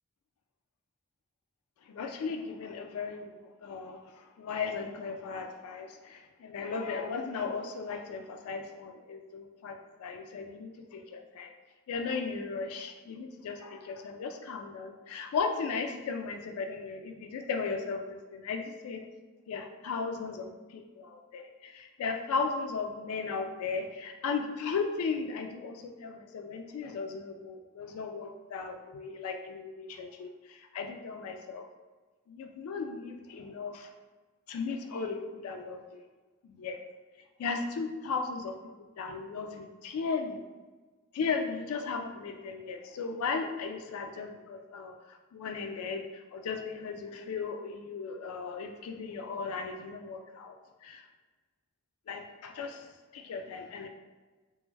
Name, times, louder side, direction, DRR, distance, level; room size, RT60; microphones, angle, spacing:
voice 1, 1.9-11.5 11.9-18.0 18.3-19.0 19.5-31.7 32.3-33.9 34.5-36.0 36.4-36.8 37.4-38.6 39.0-40.4 41.1-50.5 50.8-51.0 52.1-52.9 53.1-53.9, left 5 dB, 85° left, 4 dB, 0.3 m, -36 dB
2.9 x 2.3 x 3.2 m, 1.3 s
head